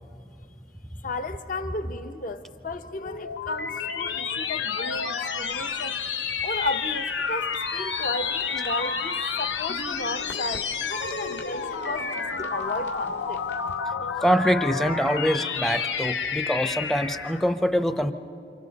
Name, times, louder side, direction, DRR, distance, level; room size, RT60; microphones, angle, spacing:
voice 1, 1.0-6.0 6.4-13.4, left 2 dB, 50° left, 0.8 m, -34 dB
sound 1, 2.8-17.5, left 5 dB, 85° left, 0.9 m, -30 dB
sound 2, 5.4-13.8, left 3 dB, 70° left, 2.1 m, -50 dB
voice 2, 14.2-18.1, equal, ahead, 0.6 m, -24 dB
29.5 x 27.0 x 4.1 m
head